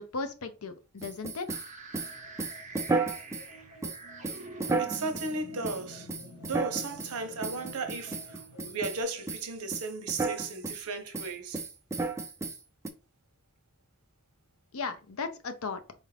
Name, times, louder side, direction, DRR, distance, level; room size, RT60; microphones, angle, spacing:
voice 1, 0.0-1.5 14.7-15.8, left 4 dB, 70° left, 0.6 m, -36 dB
sound 1, 1.0-3.5 3.8-5.3 5.6-5.8 6.1-7.1 7.4-9.0 9.3-9.5 9.7-10.8 11.1-12.9, right 3 dB, 15° right, 0.4 m, -33 dB
sound 2, 1.5-9.4, right 2 dB, 35° right, 0.8 m, -48 dB
sound 3, 2.0-9.0, equal, 85° left, 1.1 m, -54 dB
voice 2, 4.8-6.2 6.4-11.6, right 3 dB, 80° right, 0.8 m, -35 dB
4.0 x 2.5 x 3.2 m
head